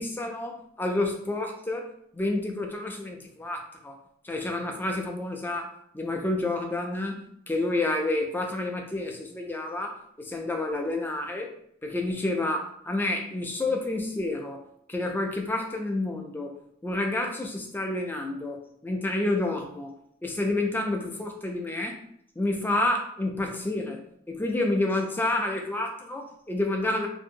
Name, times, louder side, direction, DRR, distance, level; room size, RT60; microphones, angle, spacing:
voice 1, 0.0-4.0 4.2-11.5 11.8-16.5 16.8-20.0 20.2-22.0 22.4-27.1, left 2 dB, 10° left, 2 dB, 0.3 m, -29 dB
2.8 x 2.6 x 2.6 m, 0.69 s
head